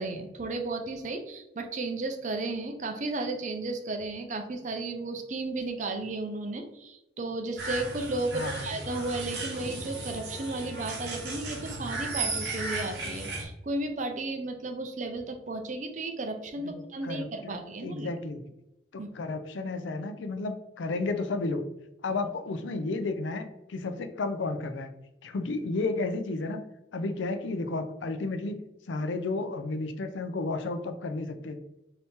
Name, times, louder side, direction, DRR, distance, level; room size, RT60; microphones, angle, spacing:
voice 1, 0.0-18.1 19.0-19.1, right 2 dB, 40° right, 5 dB, 0.5 m, -34 dB
sound 1, 7.6-13.4, right 2 dB, 55° right, 1.1 m, -35 dB
voice 2, 8.3-8.8 16.6-18.4 18.9-21.6 22.0-24.9 25.2-26.6 26.9-31.6, left 3 dB, 75° left, 9 dB, 0.4 m, -32 dB
4.1 x 2.9 x 3.5 m, 0.89 s
head